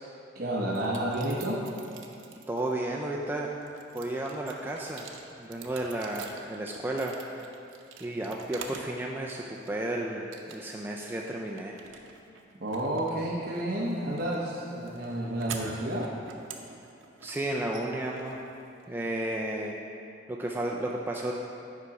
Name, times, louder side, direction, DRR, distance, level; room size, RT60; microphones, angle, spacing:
voice 1, 0.3-1.6 12.6-16.1, right 1 dB, 50° right, -4 dB, 0.8 m, -30 dB
sound 1, 0.7-2.7 3.2-9.0 9.3-9.9 10.3-10.9 11.2-19.1, right 5 dB, 90° right, 0.7 m, -46 dB
voice 2, 2.5-3.5 3.9-5.1 5.4-7.2 8.0-11.8 17.2-18.4 18.9-19.7 20.3-21.3, right 1 dB, 10° right, -1 dB, 0.3 m, -33 dB
8.2 x 4.8 x 5.2 m, 2.7 s
head